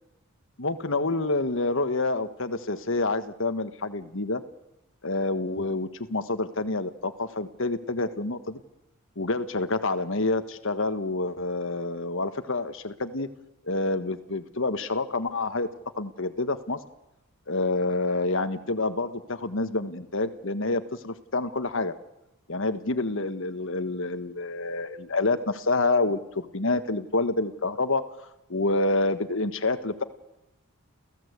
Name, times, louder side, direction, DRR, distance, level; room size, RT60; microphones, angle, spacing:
voice 1, 0.6-4.4 5.0-8.6 9.2-13.3 13.7-15.7 16.0-16.8 17.5-21.9 22.5-28.0 28.5-30.0, left 2 dB, 60° left, 10 dB, 1.5 m, -28 dB
30.0 x 15.5 x 8.3 m, 0.92 s
head